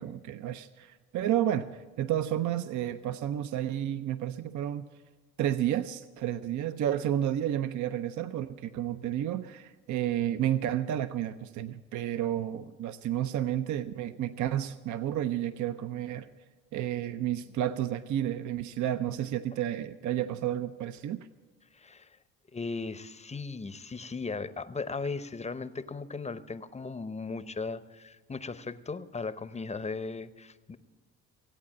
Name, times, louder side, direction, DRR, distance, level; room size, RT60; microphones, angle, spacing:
voice 1, 0.0-4.9 5.4-16.3 16.7-21.3, right 11 dB, 60° right, 12 dB, 0.6 m, -31 dB
voice 2, 21.7-22.1 22.5-30.8, left 4 dB, 20° left, 13 dB, 0.7 m, -37 dB
17.5 x 8.5 x 7.3 m, 1.3 s
supercardioid pair, 80°, 34 cm